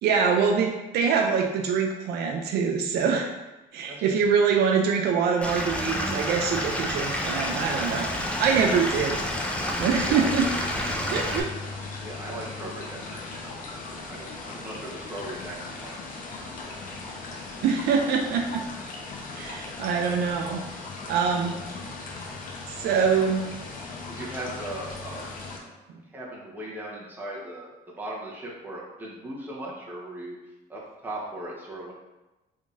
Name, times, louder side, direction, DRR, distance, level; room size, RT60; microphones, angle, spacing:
voice 1, 0.0-3.3 3.7-9.2 9.8-10.5 11.1-11.5 17.6-18.6 19.3-20.6 21.0-21.6 22.7-23.4, right 6 dB, 70° right, 2 dB, 0.5 m, -24 dB
Stream / Liquid, 5.4-11.4, equal, 5° left, 0.4 m, -29 dB
sound 1, 7.0-25.6, left 3 dB, 55° left, 0.7 m, -38 dB
voice 2, 10.2-10.8 12.0-17.2 24.1-25.2 25.5-25.8 26.0-30.4 30.7-31.9, right 1 dB, 10° right, -5 dB, 1.1 m, -39 dB
3.6 x 3.5 x 2.6 m, 1.0 s
cardioid pair, 110°, 17 cm